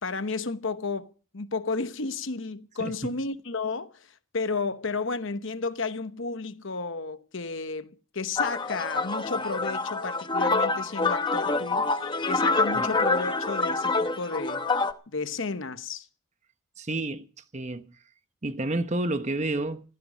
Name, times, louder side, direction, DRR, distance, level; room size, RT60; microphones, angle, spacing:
voice 1, 0.0-4.1 4.3-14.7 15.1-16.1, left 4 dB, 60° left, 1.0 m, -32 dB
voice 2, 2.8-3.1 12.7-12.9 16.8-17.3 17.5-17.9 18.4-19.8, right 2 dB, 30° right, 1.0 m, -30 dB
sound 1, 8.4-14.9, left 3 dB, 20° left, 0.8 m, -26 dB
17.0 x 14.5 x 5.2 m
head